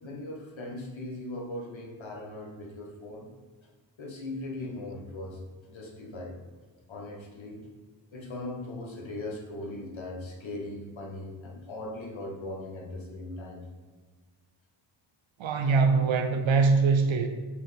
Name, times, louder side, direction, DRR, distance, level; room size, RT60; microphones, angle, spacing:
voice 1, 0.0-3.3 4.0-5.4 5.7-6.4 6.9-7.6 8.1-13.6, left 2 dB, 90° left, -1 dB, 1.4 m, -39 dB
voice 2, 15.4-17.3, right 4 dB, 85° right, 6 dB, 0.6 m, -23 dB
7.1 x 4.5 x 3.6 m, 1.4 s
wide cardioid pair, 120°, 45 cm